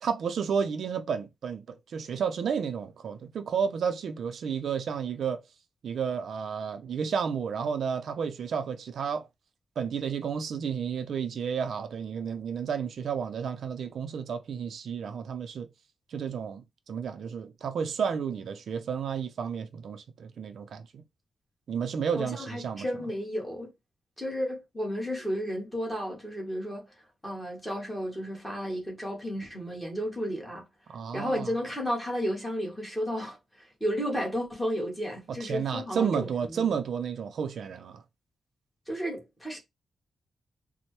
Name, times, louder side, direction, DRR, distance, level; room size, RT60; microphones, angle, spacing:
voice 1, 0.0-5.4 5.8-9.3 9.8-15.7 16.1-21.0 21.7-22.9 30.9-31.5 35.3-38.0, right 7 dB, 65° right, 0.4 m, -31 dB
voice 2, 22.2-23.7 24.2-26.8 27.2-30.6 31.1-36.6 38.9-39.6, equal, 5° left, 1.2 m, -33 dB
4.2 x 2.0 x 3.0 m
wide cardioid pair, 175°, 0 cm